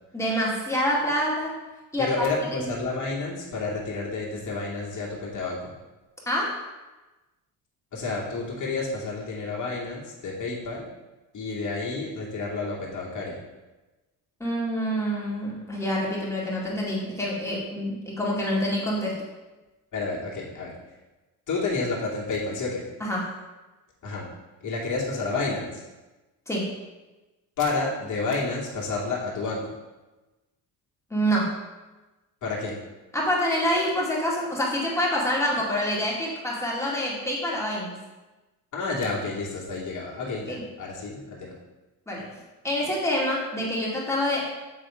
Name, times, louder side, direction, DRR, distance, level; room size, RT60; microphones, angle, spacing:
voice 1, 0.1-1.6 1.9-2.1 2.5-2.7 6.3-6.6 14.4-19.2 23.0-23.3 26.5-26.7 31.1-31.6 33.1-38.0 40.5-40.6 42.1-42.3 42.6-44.5, equal, 5° left, -5 dB, 2.3 m, -26 dB
voice 2, 2.0-5.7 7.9-10.9 11.3-13.4 19.9-20.7 21.5-22.8 24.0-24.3 24.6-25.8 27.6-29.7 32.4-32.7 38.7-41.5, left 3 dB, 45° left, -4 dB, 2.5 m, -30 dB
8.0 x 3.6 x 5.0 m, 1.1 s
cardioid pair, 95°, 41 cm